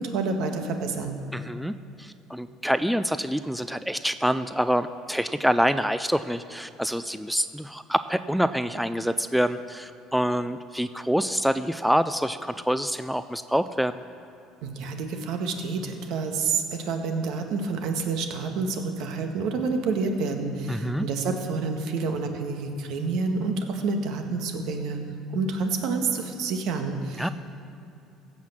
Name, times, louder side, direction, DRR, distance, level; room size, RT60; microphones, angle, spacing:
voice 1, 0.0-1.2 14.6-25.0 25.3-27.3, right 4 dB, 70° right, 5 dB, 1.5 m, -28 dB
voice 2, 1.3-14.0 20.7-21.1 27.2-27.3, equal, ahead, 11 dB, 0.3 m, -26 dB
15.5 x 5.9 x 7.3 m, 2.8 s
cardioid pair, 110°, 0 cm